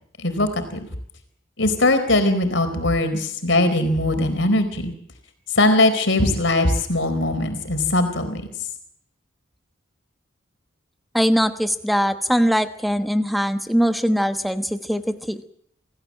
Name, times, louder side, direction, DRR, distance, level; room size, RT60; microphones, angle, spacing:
voice 1, 0.2-0.8 1.6-4.9 5.5-8.4, left 2 dB, 65° left, 8 dB, 4.4 m, -20 dB
voice 2, 11.1-15.0 15.3-15.4, equal, ahead, 9 dB, 1.1 m, -21 dB
27.5 x 16.5 x 7.6 m, 0.67 s
head